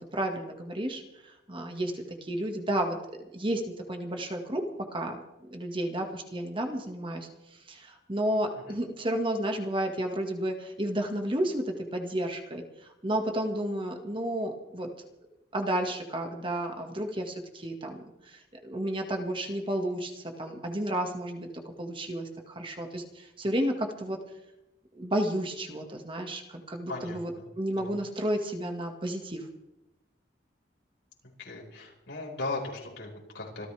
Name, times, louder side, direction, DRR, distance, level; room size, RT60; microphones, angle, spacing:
voice 1, 0.1-3.6 3.9-4.6 4.9-5.2 5.5-7.3 7.7-12.6 13.0-14.9 15.5-24.2 24.9-27.3 27.6-29.4, right 1 dB, 30° right, 3 dB, 1.8 m, -32 dB
voice 2, 26.9-27.5 27.7-28.0 31.4-33.7, left 2 dB, 90° left, -1 dB, 5.1 m, -38 dB
26.0 x 14.5 x 3.5 m, 0.93 s
head